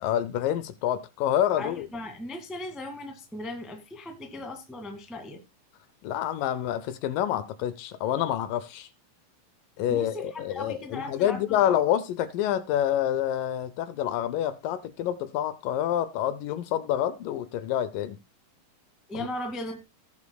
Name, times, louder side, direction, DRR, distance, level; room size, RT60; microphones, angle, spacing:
voice 1, 0.0-1.9 6.0-8.9 9.8-18.2 19.2-19.3, left 11 dB, 75° left, 2.2 m, -27 dB
voice 2, 1.6-5.4 9.9-11.7 19.1-19.8, left 1 dB, ahead, 0.6 m, -37 dB
18.0 x 7.2 x 2.3 m
omnidirectional pair, 4.2 m